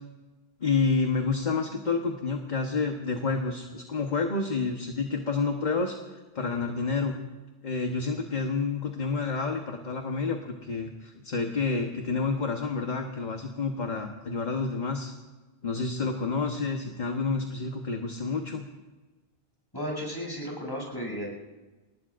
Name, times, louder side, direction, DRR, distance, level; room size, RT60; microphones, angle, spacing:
voice 1, 0.6-7.2 7.6-15.1 15.6-18.7, left 4 dB, 45° left, 3 dB, 1.3 m, -29 dB
voice 2, 19.7-21.3, equal, 20° left, -2 dB, 7.4 m, -34 dB
28.5 x 19.5 x 2.6 m, 1.2 s
omnidirectional pair, 1.0 m